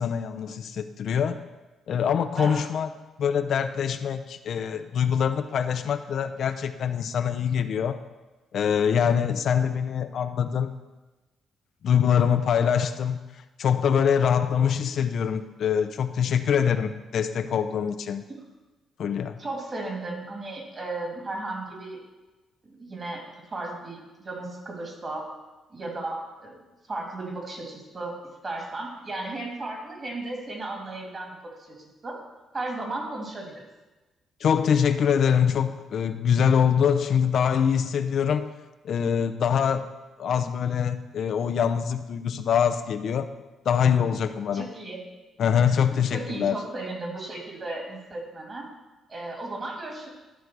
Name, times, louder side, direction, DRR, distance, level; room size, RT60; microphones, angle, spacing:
voice 1, 0.0-1.4 1.9-2.9 3.2-8.0 8.5-10.7 11.8-13.2 13.6-18.2 19.0-19.4 34.4-38.5 38.8-39.9 40.2-43.3 43.7-44.7 45.4-46.6, left 7 dB, 65° left, 9 dB, 0.5 m, -24 dB
voice 2, 19.4-22.0 22.6-23.2 23.5-24.0 24.2-25.2 25.7-26.6 26.9-28.1 28.4-31.4 31.7-32.1 32.5-33.6 44.5-45.0 45.9-48.7 49.1-50.1, right 2 dB, 35° right, 0 dB, 2.7 m, -35 dB
12.0 x 5.2 x 4.6 m, 1.1 s
cardioid pair, 90°, 0 cm